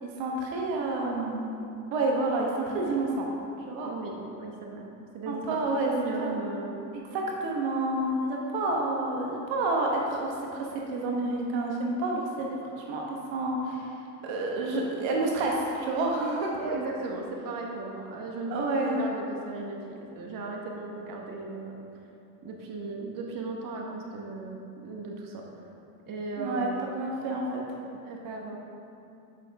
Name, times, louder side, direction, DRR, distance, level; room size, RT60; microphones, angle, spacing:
voice 1, 0.0-1.5 1.9-3.3 3.7-3.9 5.3-5.9 6.2-6.4 7.1-13.9 14.2-16.5 18.5-19.0 26.4-27.6, right 2 dB, 70° right, -1 dB, 1.2 m, -29 dB
voice 2, 3.8-4.8 5.1-5.6 5.9-6.7 16.6-21.8 22.4-25.4 26.1-26.8 28.0-28.6, right 3 dB, 45° right, 0 dB, 1.2 m, -36 dB
7.9 x 5.8 x 3.4 m, 2.7 s
supercardioid pair, 75°, 46 cm